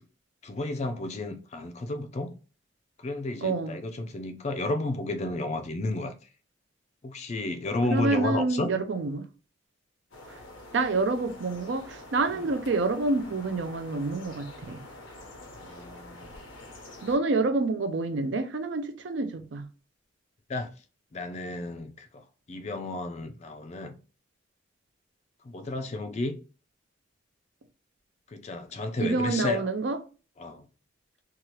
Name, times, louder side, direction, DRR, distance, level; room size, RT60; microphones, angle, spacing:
voice 1, 0.4-2.3 3.0-6.1 7.0-8.7 15.6-16.2 20.5-20.7 21.1-24.0 25.4-26.4 28.3-29.6 30.4-30.7, left 2 dB, 35° left, 0.4 m, -32 dB
voice 2, 3.4-3.8 7.9-9.3 10.3-10.4 10.7-14.8 17.0-19.7 29.0-30.0, right 3 dB, 65° right, 0.5 m, -28 dB
sound 1, 10.1-17.2, left 2 dB, 90° left, 0.8 m, -46 dB
2.8 x 2.3 x 3.1 m
head